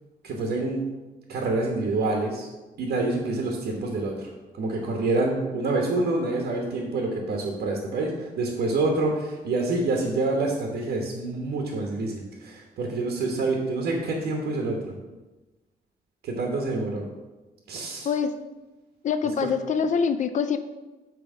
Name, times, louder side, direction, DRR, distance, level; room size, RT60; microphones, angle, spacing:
voice 1, 0.2-0.8 1.3-2.5 2.8-4.3 4.6-15.0 16.2-17.1 17.7-18.1, right 2 dB, 85° right, 0 dB, 1.2 m, -27 dB
voice 2, 19.0-20.6, left 6 dB, 50° left, 9 dB, 0.5 m, -24 dB
8.7 x 3.4 x 6.1 m, 1.1 s
wide cardioid pair, 145°, 16 cm